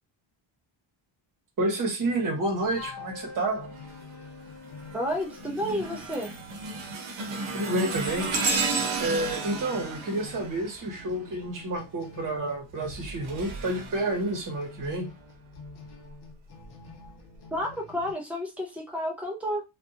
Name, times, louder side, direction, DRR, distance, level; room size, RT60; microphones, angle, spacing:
voice 1, 1.6-3.7 7.5-8.3 9.0-15.1, right 1 dB, 40° right, 2 dB, 0.9 m, -29 dB
sound 1, 2.0-18.1, left 3 dB, 55° left, 0.7 m, -49 dB
Wind instrument woodwind instrument, 2.7-5.6, left 5 dB, 90° left, 0.8 m, -45 dB
sound 2, 3.8-4.1 4.6-11.4 12.7-14.9 15.5-15.7 16.6-16.7, right 3 dB, 65° right, 0.8 m, -33 dB
voice 2, 4.9-6.3 17.5-19.6, equal, 5° right, 0 dB, 0.3 m, -31 dB
2.6 x 2.3 x 2.5 m, 0.25 s
wide cardioid pair, 165°, 49 cm